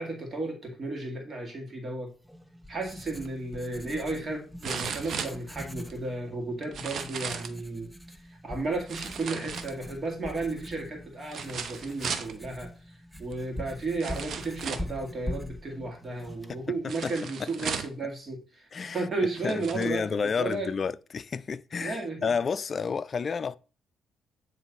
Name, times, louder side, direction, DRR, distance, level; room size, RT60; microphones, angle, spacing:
voice 1, 0.0-2.1 2.7-7.9 8.3-18.7 18.9-20.7 21.8-22.2, right 2 dB, 35° right, 2.1 m, -34 dB
Writing, 2.2-17.0, left 1 dB, 5° right, 0.6 m, -43 dB
sound 1, 3.2-3.3 4.6-5.9 6.6-7.6 8.9-10.1 11.3-12.3 13.3-13.4 14.0-15.0 16.9-18.0 18.8-18.9 19.3-19.9 20.5-20.6, right 6 dB, 60° right, 0.8 m, -36 dB
voice 2, 16.5-17.5 18.7-19.1 19.4-23.6, left 5 dB, 40° left, 0.4 m, -31 dB
9.3 x 3.3 x 4.2 m
cardioid pair, 90°, 0 cm